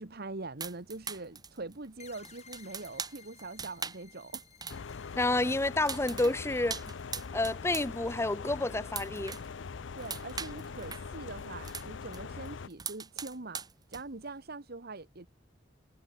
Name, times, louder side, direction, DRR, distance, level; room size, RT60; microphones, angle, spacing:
voice 1, 0.0-4.4 6.9-7.0 9.9-15.3, right 3 dB, 55° right, 1.5 m, -43 dB
sound 1, 0.6-5.0 5.2-7.9 8.2-9.5 9.8-12.2 12.5-14.3, right 6 dB, 20° right, 1.9 m, -41 dB
sound 2, 2.0-9.2, left 7 dB, 35° left, 6.6 m, -59 dB
sound 3, 4.7-12.7, left 5 dB, 75° left, 0.6 m, -42 dB
voice 2, 5.2-6.8 7.3-9.4, left 2 dB, 15° left, 0.8 m, -29 dB
head